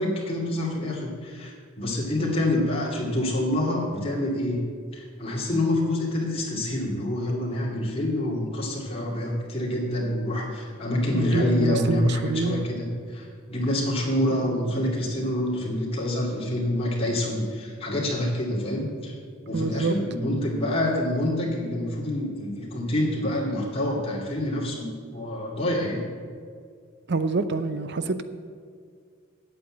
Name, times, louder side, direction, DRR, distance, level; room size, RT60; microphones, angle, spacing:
voice 1, 0.0-4.6 4.9-19.1 19.5-26.1, left 1 dB, 30° left, -4 dB, 2.6 m, -27 dB
voice 2, 2.2-2.7 11.1-12.7 14.3-14.7 19.5-20.0 27.1-28.2, right 3 dB, 55° right, 11 dB, 0.7 m, -27 dB
8.6 x 8.1 x 8.9 m, 2.1 s
head